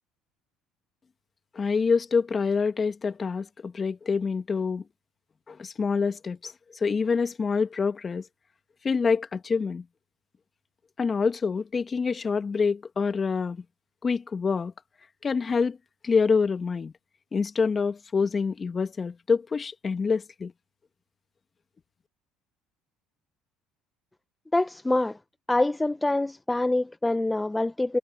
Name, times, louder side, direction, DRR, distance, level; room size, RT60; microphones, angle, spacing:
voice 1, 1.5-4.8 5.5-8.2 8.8-9.8 11.0-13.6 14.0-14.7 15.2-15.8 16.0-16.9 17.3-20.5, left 5 dB, 30° left, 1.9 m, -26 dB
voice 2, 24.5-25.2 25.5-28.0, left 2 dB, 10° left, 0.5 m, -25 dB
supercardioid pair, 90°, 0 cm